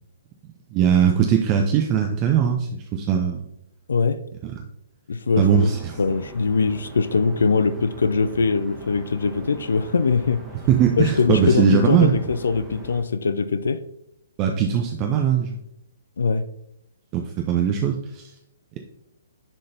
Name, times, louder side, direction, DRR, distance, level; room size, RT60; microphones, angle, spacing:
voice 1, 0.7-3.4 4.4-4.5 5.4-6.0 10.7-12.1 14.4-15.6 17.1-18.3, right 8 dB, 25° right, 3 dB, 0.5 m, -20 dB
voice 2, 3.9-4.2 5.1-5.7 6.0-10.4 11.0-13.8 16.2-16.5, left 4 dB, 65° left, 12 dB, 0.3 m, -22 dB
sound 1, 5.3-13.0, right 2 dB, 10° right, 1.2 m, -41 dB
9.9 x 3.9 x 2.7 m, 0.79 s
figure-of-eight pair, 125°, 0 cm